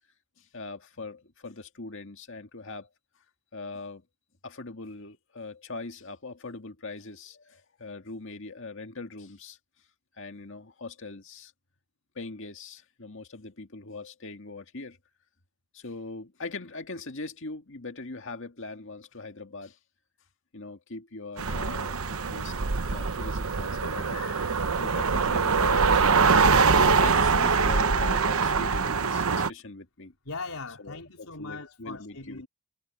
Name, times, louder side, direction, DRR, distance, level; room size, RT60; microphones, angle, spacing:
voice 1, 0.4-2.9 3.5-4.0 4.4-9.6 10.2-11.5 12.2-15.0 15.7-19.8 20.5-22.0 22.3-22.5 22.9-26.3 26.8-30.1 30.8-32.4, left 3 dB, 60° left, 2.1 m, -41 dB
sound 1, 21.4-29.5, right 4 dB, 75° right, 1.0 m, -23 dB
voice 2, 30.3-32.5, left 3 dB, 75° left, 4.1 m, -39 dB
head